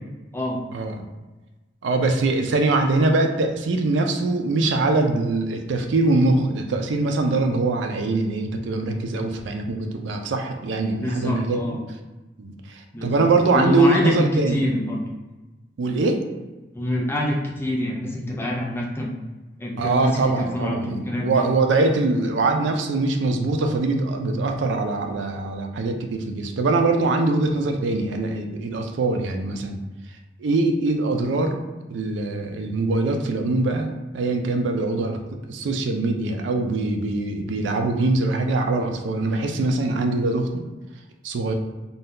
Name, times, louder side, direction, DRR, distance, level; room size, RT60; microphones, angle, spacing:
voice 1, 0.7-1.1 1.8-11.6 12.4-14.6 15.8-16.2 19.8-29.8 30.4-31.6 31.9-35.2 35.5-40.6 41.2-41.5, right 2 dB, 75° right, 4 dB, 0.4 m, -23 dB
voice 2, 10.9-11.8 12.9-13.2 13.5-15.0 16.7-19.1 19.6-21.4, left 1 dB, 15° left, -2 dB, 0.4 m, -26 dB
2.6 x 2.2 x 3.6 m, 1.2 s
head